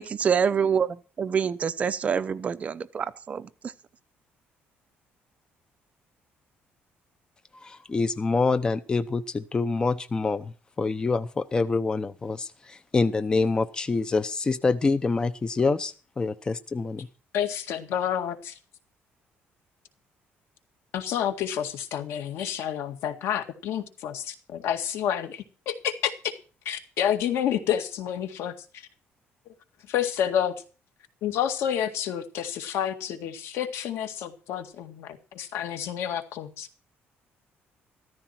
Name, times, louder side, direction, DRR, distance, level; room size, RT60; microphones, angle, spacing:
voice 1, 0.0-3.5, right 7 dB, 30° right, 0.8 m, -26 dB
voice 2, 7.6-10.5 10.8-17.1, left 3 dB, 20° left, 0.7 m, -26 dB
voice 3, 17.3-18.5 20.9-26.3 26.7-28.8 29.9-30.5 31.2-36.7, left 9 dB, 80° left, 2.0 m, -29 dB
14.0 x 14.0 x 4.4 m
cardioid pair, 160°, 4 cm